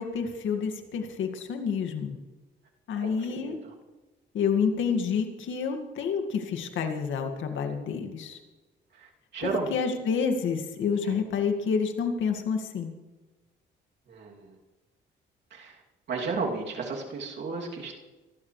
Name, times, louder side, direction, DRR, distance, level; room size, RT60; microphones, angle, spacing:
voice 1, 0.0-2.2 2.9-3.6 4.3-8.4 9.4-12.9, left 6 dB, 75° left, 5 dB, 2.1 m, -29 dB
voice 2, 3.0-3.7 8.9-9.7 11.0-11.2 14.1-14.6 15.5-15.8 16.1-17.9, right 4 dB, 60° right, -1 dB, 2.9 m, -34 dB
24.5 x 12.5 x 3.3 m, 1.2 s
cardioid pair, 90°, 20 cm